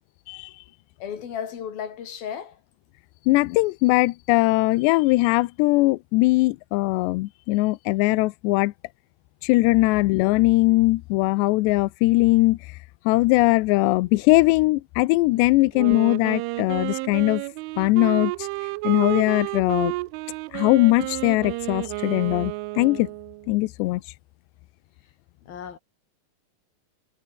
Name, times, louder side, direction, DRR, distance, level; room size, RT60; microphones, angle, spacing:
voice 1, 1.0-2.6 15.3-15.5 25.4-25.8, left 8 dB, 50° left, 4.6 m, -34 dB
voice 2, 3.3-8.7 9.4-12.6 13.1-17.4 17.8-18.3 18.8-19.9 20.5-23.1 23.5-24.0, left 21 dB, 90° left, 2.4 m, -20 dB
Wind instrument woodwind instrument, 15.7-23.5, right 23 dB, 85° right, 2.9 m, -31 dB
omnidirectional pair, 5.8 m